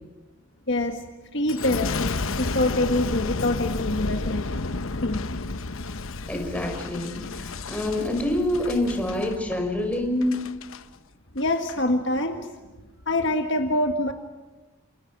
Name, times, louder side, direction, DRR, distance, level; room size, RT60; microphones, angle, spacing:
voice 1, 0.7-1.0 1.3-4.6 5.0-5.2 11.4-12.5 13.1-14.1, left 1 dB, 55° left, 5 dB, 1.8 m, -25 dB
Boom, 1.5-10.8 11.4-11.8, left 3 dB, 70° left, 1.0 m, -32 dB
voice 2, 6.3-10.4, left 1 dB, 5° left, 2 dB, 5.4 m, -26 dB
29.5 x 28.5 x 6.2 m, 1.2 s
head